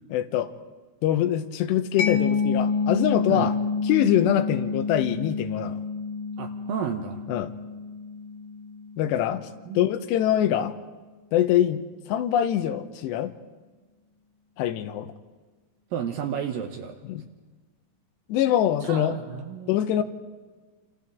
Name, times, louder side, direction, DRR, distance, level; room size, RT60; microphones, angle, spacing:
voice 1, 0.1-0.5 1.0-3.6 3.8-5.8 7.3-7.5 9.0-9.5 9.8-10.7 11.3-11.8 12.1-13.3 14.6-15.1 17.1-17.2 18.3-19.2 19.7-20.0, left 11 dB, 85° left, 9 dB, 3.0 m, -24 dB
Mallet percussion, 2.0-9.4, left 5 dB, 65° left, 1.9 m, -28 dB
voice 2, 6.4-7.3 9.7-9.9 15.9-17.0 18.8-20.0, right 8 dB, 75° right, 5 dB, 2.2 m, -32 dB
28.5 x 27.0 x 3.6 m, 1.3 s
omnidirectional pair, 4.9 m